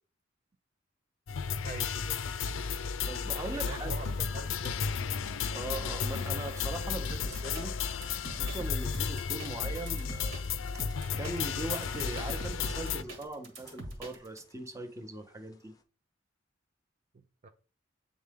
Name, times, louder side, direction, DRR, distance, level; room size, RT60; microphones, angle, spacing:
sound 1, 1.3-13.0, left 6 dB, 85° left, 0.5 m, -33 dB
voice 1, 1.6-2.2 3.5-4.9 17.4-17.5, right 3 dB, 40° right, 0.4 m, -43 dB
voice 2, 3.0-3.9 5.5-7.7 8.3-10.4 10.7-10.8 11.2-15.7, right 2 dB, 15° right, 0.8 m, -40 dB
sound 2, 7.1-14.4, right 1 dB, 75° right, 1.9 m, -43 dB
sound 3, 10.5-15.8, left 2 dB, 20° left, 0.6 m, -56 dB
8.6 x 3.7 x 3.6 m
head